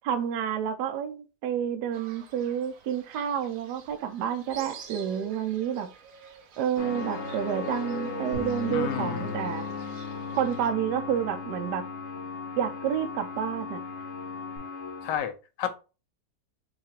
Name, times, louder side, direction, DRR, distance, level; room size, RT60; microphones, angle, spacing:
voice 1, 0.0-5.9 6.6-9.7 10.3-11.8 12.6-13.8, right 9 dB, 80° right, 1.2 m, -29 dB
Fowl, 1.9-10.7, right 7 dB, 60° right, 1.0 m, -46 dB
sound 1, 6.8-15.2, left 5 dB, 50° left, 1.0 m, -37 dB
sound 2, 8.3-14.6, left 5 dB, 40° right, 1.8 m, -43 dB
voice 2, 8.7-9.4 15.0-15.7, left 9 dB, 85° left, 1.3 m, -32 dB
4.7 x 2.4 x 4.3 m
omnidirectional pair, 1.8 m